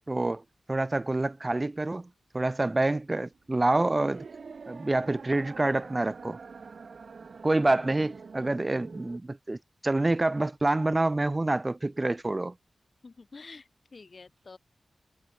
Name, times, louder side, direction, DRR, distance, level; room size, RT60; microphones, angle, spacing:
voice 1, 0.1-0.4 0.7-4.3 4.7-6.4 7.4-12.6, right 2 dB, 25° right, 0.3 m, -27 dB
sound 1, 3.3-9.2, right 5 dB, 65° right, 1.7 m, -46 dB
voice 2, 13.0-14.6, left 4 dB, 50° left, 1.7 m, -48 dB
wide cardioid pair, 110°, 0 cm